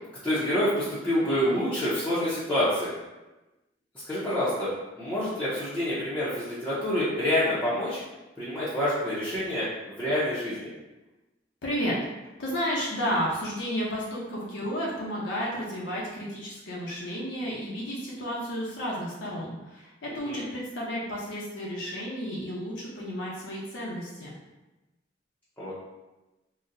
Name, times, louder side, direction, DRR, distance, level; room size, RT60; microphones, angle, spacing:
voice 1, 0.2-2.9 4.0-8.0 8.4-10.7 20.1-20.5 25.6-25.7, left 1 dB, 10° left, -12 dB, 0.6 m, -27 dB
voice 2, 11.6-12.0 12.4-24.3, equal, 75° left, -5 dB, 0.6 m, -32 dB
3.9 x 2.1 x 2.5 m, 1.1 s
head